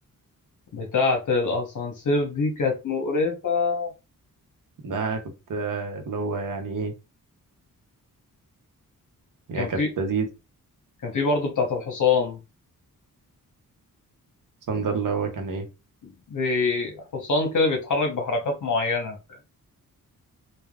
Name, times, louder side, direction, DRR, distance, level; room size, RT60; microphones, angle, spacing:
voice 1, 0.7-3.9 9.6-9.9 11.0-12.4 16.0-19.2, left 3 dB, 60° left, 3 dB, 0.9 m, -25 dB
voice 2, 4.8-5.2 5.5-6.9 9.5-10.3 14.7-15.7, right 4 dB, 65° right, 4 dB, 0.8 m, -28 dB
3.4 x 2.2 x 2.3 m, 0.27 s
wide cardioid pair, 165°, 35 cm